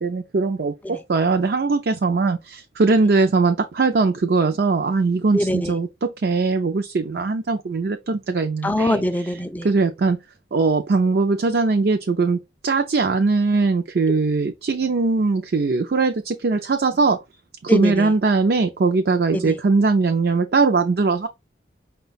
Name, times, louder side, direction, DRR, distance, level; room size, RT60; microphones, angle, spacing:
voice 1, 0.0-9.0 9.6-10.2 10.5-17.2 17.6-21.3, right 3 dB, 60° right, 0.4 m, -20 dB
voice 2, 5.3-5.7 8.6-9.7 17.7-18.1 19.3-19.6, left 1 dB, 10° left, 0.3 m, -23 dB
5.5 x 2.3 x 3.9 m
head